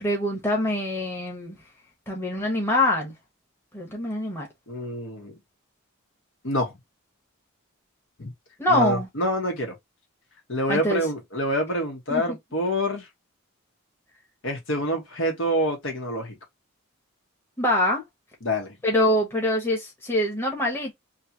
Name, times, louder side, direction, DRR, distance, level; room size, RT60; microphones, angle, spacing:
voice 1, 0.0-1.6 2.1-3.1 3.7-4.5 8.6-9.1 10.7-11.0 12.1-12.2 17.6-18.0 18.8-20.9, left 1 dB, 10° left, 1.2 m, -24 dB
voice 2, 4.7-5.3 6.4-6.7 8.2-8.3 8.7-9.7 10.5-13.1 14.4-16.4 18.4-18.8, equal, 60° left, 1.4 m, -26 dB
3.3 x 2.9 x 2.8 m
head